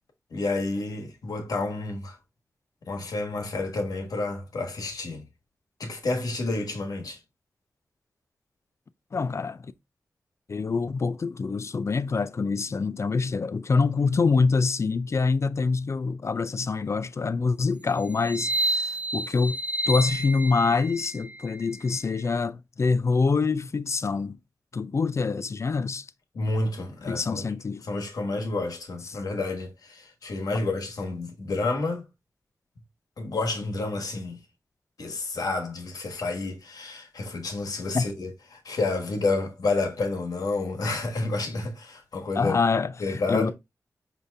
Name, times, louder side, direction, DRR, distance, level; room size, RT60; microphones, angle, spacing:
voice 1, 0.3-2.2 2.9-5.2 5.8-7.2 26.3-27.4 27.8-32.1 33.2-34.4 35.0-42.5 43.0-43.5, left 3 dB, 85° left, 1.2 m, -30 dB
voice 2, 9.1-9.7 10.5-19.6 19.9-24.4 24.7-26.1 27.1-27.8 29.1-29.2 37.9-38.0 42.4-43.5, left 4 dB, 50° left, 0.4 m, -25 dB
sound 1, 18.2-22.2, right 2 dB, 20° right, 0.7 m, -30 dB
5.2 x 2.7 x 3.3 m
cardioid pair, 65°, 6 cm